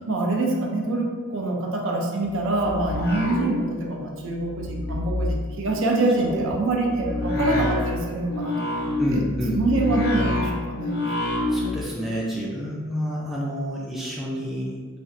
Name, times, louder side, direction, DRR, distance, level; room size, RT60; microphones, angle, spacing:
voice 1, 0.0-9.2 9.5-11.0, right 2 dB, 60° right, 0 dB, 0.5 m, -25 dB
sound 1, 2.4-4.1 4.4-11.8, left 2 dB, 45° left, 0.6 m, -28 dB
voice 2, 9.0-9.9 11.5-14.7, equal, ahead, -6 dB, 0.4 m, -29 dB
4.2 x 2.5 x 2.5 m, 1.5 s
head